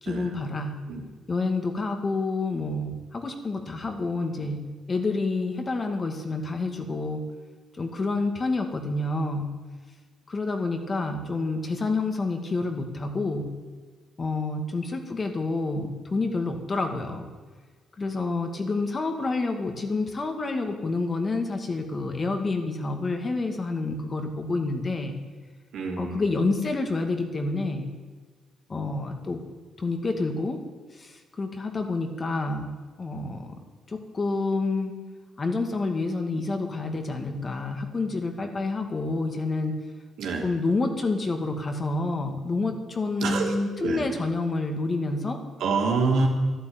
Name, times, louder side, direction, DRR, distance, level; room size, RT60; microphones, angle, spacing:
voice 1, 0.0-0.8 1.3-7.2 7.7-9.5 10.3-13.5 14.2-17.3 18.0-25.2 26.0-27.9 28.7-29.4 29.8-30.6 30.9-32.7 33.0-33.5 33.9-35.0 35.4-39.7 40.4-45.4, left 3 dB, 35° left, 5 dB, 2.2 m, -28 dB
voice 2, 25.7-26.2 40.2-40.5 43.2-44.1 45.6-46.3, right 4 dB, 80° right, 0 dB, 3.2 m, -26 dB
12.0 x 12.0 x 9.4 m, 1.4 s
cardioid pair, 90°, 0 cm